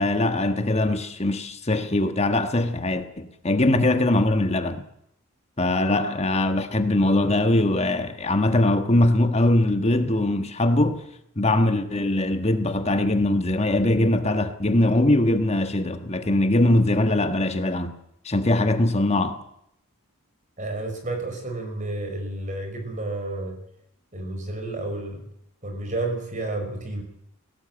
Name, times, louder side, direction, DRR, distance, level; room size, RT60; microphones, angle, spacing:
voice 1, 0.0-4.8 5.6-11.0 11.4-17.9 18.2-19.4, left 1 dB, 30° left, 1.4 m, -21 dB
voice 2, 20.6-23.5 24.1-25.2 25.6-27.0, right 2 dB, 35° right, 5.5 m, -31 dB
17.5 x 17.5 x 8.9 m
head